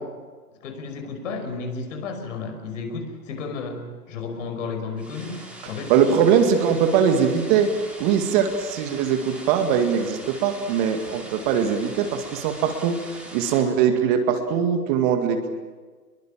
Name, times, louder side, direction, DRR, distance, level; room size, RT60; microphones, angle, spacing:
voice 1, 0.6-6.2, left 4 dB, 50° left, 6 dB, 5.6 m, -33 dB
sound 1, 5.0-13.6, right 1 dB, ahead, 4.2 m, -41 dB
voice 2, 5.9-7.7 8.0-13.0 13.3-15.5, right 7 dB, 30° right, 6 dB, 2.2 m, -21 dB
25.5 x 22.5 x 7.4 m, 1.4 s
hypercardioid pair, 130°, 47 cm